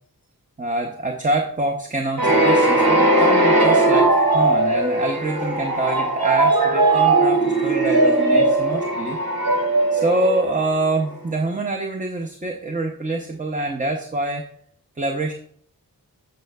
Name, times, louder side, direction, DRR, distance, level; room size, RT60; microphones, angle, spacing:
voice 1, 0.6-9.2 9.9-14.4 15.0-15.3, right 2 dB, 20° right, 2 dB, 0.6 m, -25 dB
sound 1, 2.2-10.9, right 2 dB, 90° right, 1.7 m, -18 dB
13.0 x 5.4 x 2.3 m, 0.62 s
wide cardioid pair, 110°, 35 cm